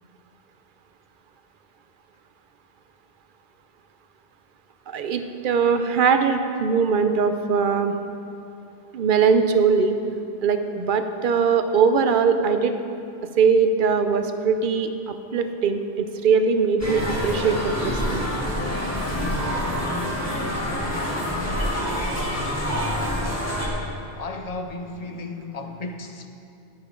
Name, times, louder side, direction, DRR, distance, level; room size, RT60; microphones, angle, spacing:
voice 1, 4.9-7.9 8.9-9.9 10.4-12.7 13.4-18.2, right 5 dB, 60° right, 0.7 m, -21 dB
sound 1, 16.8-23.7, equal, 15° left, 1.7 m, -26 dB
voice 2, 20.6-23.2 24.2-26.3, left 3 dB, 45° left, 0.6 m, -37 dB
11.0 x 9.5 x 3.7 m
omnidirectional pair, 1.1 m